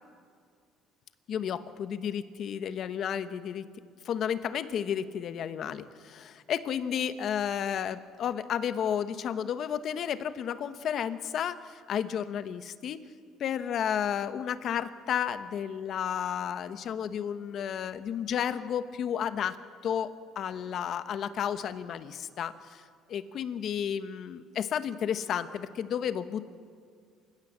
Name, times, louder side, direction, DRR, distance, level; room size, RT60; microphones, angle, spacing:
voice 1, 1.3-3.6 4.0-13.0 13.4-22.8 23.1-26.4, left 8 dB, 45° left, 12 dB, 1.1 m, -32 dB
28.0 x 16.0 x 7.4 m, 2.2 s
cardioid pair, 145°, 0 cm